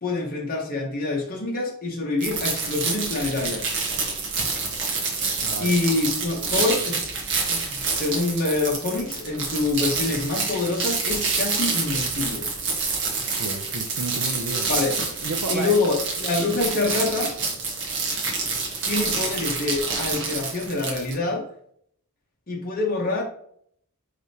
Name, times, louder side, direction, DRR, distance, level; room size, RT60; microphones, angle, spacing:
voice 1, 0.0-3.8 5.6-7.0 7.5-12.4 14.7-14.9 15.5-17.3 18.8-21.5 22.5-23.2, left 3 dB, 40° left, -2 dB, 0.9 m, -26 dB
sound 1, 2.2-21.1, right 4 dB, 55° right, 1.2 m, -27 dB
voice 2, 5.4-5.8 13.2-14.7 15.2-15.8, right 3 dB, 75° right, 5 dB, 0.6 m, -32 dB
4.8 x 3.3 x 2.8 m, 0.65 s
head